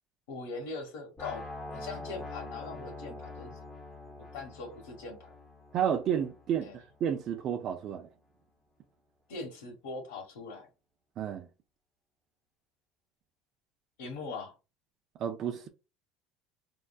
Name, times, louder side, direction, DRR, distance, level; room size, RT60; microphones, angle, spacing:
voice 1, 0.3-3.6 4.3-5.3 6.6-6.7 9.3-10.7 14.0-14.5, left 3 dB, 90° left, 1.1 m, -41 dB
sound 1, 1.2-7.1, left 2 dB, 10° left, 0.8 m, -45 dB
voice 2, 5.7-8.1 11.2-11.5 15.2-15.7, right 9 dB, 45° right, 0.4 m, -31 dB
3.7 x 2.2 x 2.3 m
cardioid pair, 140°, 0 cm